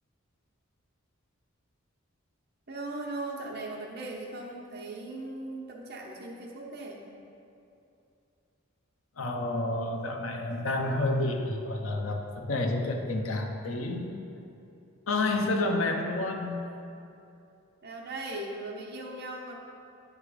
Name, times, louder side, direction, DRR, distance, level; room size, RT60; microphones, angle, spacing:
voice 1, 2.7-7.0 17.8-19.6, right 2 dB, 50° right, -2 dB, 0.9 m, -38 dB
voice 2, 9.2-14.1 15.1-16.7, left 2 dB, 70° left, 3 dB, 0.6 m, -29 dB
8.6 x 3.3 x 4.9 m, 2.7 s
head